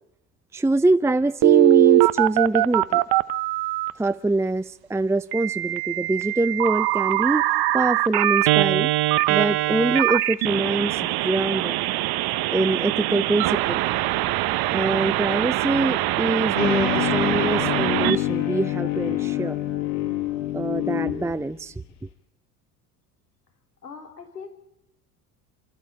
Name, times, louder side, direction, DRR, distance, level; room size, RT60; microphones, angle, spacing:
voice 1, 0.5-3.0 4.0-7.4 7.7-8.9 9.3-11.8 12.5-13.8 14.7-19.6 20.5-21.7, right 2 dB, 5° right, 0.8 m, -24 dB
Telephone, 1.4-3.9 5.3-18.2, right 16 dB, 50° right, 1.2 m, -22 dB
sound 1, 16.6-21.5, left 14 dB, 60° left, 5.8 m, -26 dB
voice 2, 23.8-24.5, left 5 dB, 90° left, 4.4 m, -40 dB
28.0 x 14.0 x 8.8 m
hypercardioid pair, 70°, 47 cm